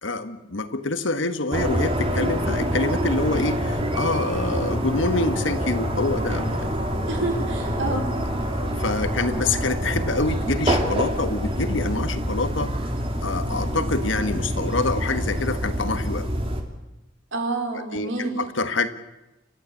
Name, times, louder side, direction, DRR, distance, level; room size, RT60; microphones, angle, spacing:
voice 1, 0.0-6.8 7.9-8.0 8.5-12.7 13.2-16.3 17.9-18.9, left 3 dB, 70° left, 10 dB, 1.6 m, -26 dB
sound 1, 1.5-16.6, equal, 30° right, 2.8 m, -26 dB
voice 2, 7.1-8.1 17.3-18.4, right 2 dB, 70° right, 4 dB, 4.3 m, -28 dB
29.5 x 14.0 x 8.6 m, 0.99 s
head